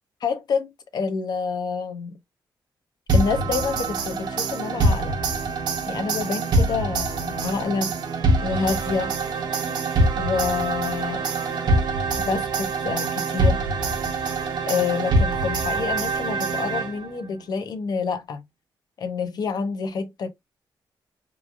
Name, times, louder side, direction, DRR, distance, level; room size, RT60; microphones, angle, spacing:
voice 1, 0.2-2.1 3.1-5.2 5.9-7.9 8.4-9.1 10.1-11.2 12.2-13.7 14.6-18.4 19.0-20.3, left 5 dB, 55° left, 0.6 m, -28 dB
sound 1, 3.1-17.2, right 2 dB, 60° right, 0.7 m, -24 dB
3.0 x 2.4 x 2.3 m
wide cardioid pair, 155°, 8 cm